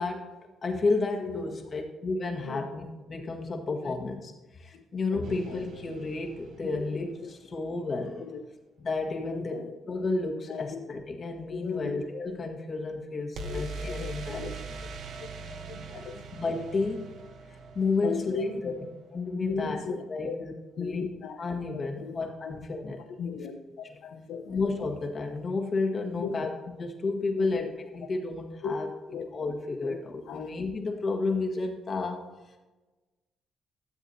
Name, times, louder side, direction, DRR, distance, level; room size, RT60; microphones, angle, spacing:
voice 1, 0.0-4.3 4.6-8.3 8.8-9.5 9.9-14.7 16.3-17.1 17.7-18.7 19.1-19.8 20.1-21.0 21.4-23.0 23.8-23.9 24.5-27.7 27.9-28.9 29.3-32.2, left 3 dB, 45° left, 2 dB, 1.5 m, -32 dB
voice 2, 5.1-5.6 6.6-6.8 7.2-7.3 8.2-8.4 9.1-9.7 10.5-10.9 11.5-12.0 13.4-14.5 15.5-16.2 18.0-18.6 19.4-20.4 20.8-21.4 21.7-22.2 23.2-24.6 26.2-26.5 27.3-27.7 28.6-28.7 29.1-29.3 29.8-30.0 30.3-30.5, left 5 dB, 80° left, 7 dB, 1.0 m, -36 dB
sound 1, 5.2-7.3 13.4-19.1, right 3 dB, 75° right, 1.0 m, -42 dB
12.5 x 7.6 x 2.8 m, 1.2 s
cardioid pair, 90°, 0 cm